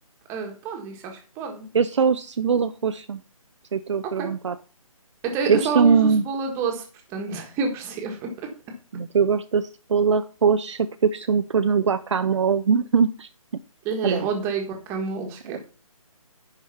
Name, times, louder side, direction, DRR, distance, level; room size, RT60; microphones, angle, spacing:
voice 1, 0.3-1.7 4.2-4.3 5.2-6.8 7.1-8.3 13.8-15.6, right 5 dB, 15° right, 3 dB, 1.5 m, -28 dB
voice 2, 1.7-3.2 3.7-4.6 5.5-6.2 8.9-13.3 14.0-14.3 15.5-15.6, right 6 dB, 55° right, 10 dB, 0.6 m, -21 dB
10.5 x 5.1 x 5.6 m, 0.36 s
hypercardioid pair, 155°, 18 cm